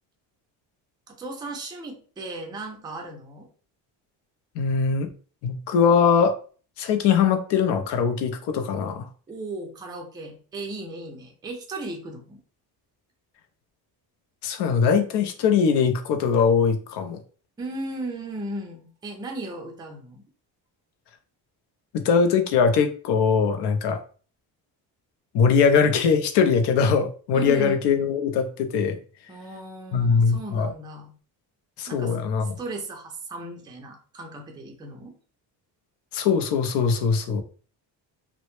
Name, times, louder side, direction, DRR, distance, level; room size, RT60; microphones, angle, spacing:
voice 1, 1.1-3.5 9.3-12.4 17.6-20.2 27.3-27.9 29.3-31.1 31.9-32.2 32.4-35.1, right 2 dB, 10° right, 2 dB, 0.4 m, -36 dB
voice 2, 4.6-5.1 5.4-6.4 6.8-9.1 14.4-17.2 21.9-24.0 25.3-29.0 29.9-30.7 31.8-32.6 36.1-37.4, left 6 dB, 70° left, 8 dB, 0.5 m, -21 dB
2.1 x 2.0 x 2.9 m, 0.40 s
cardioid pair, 130°, 42 cm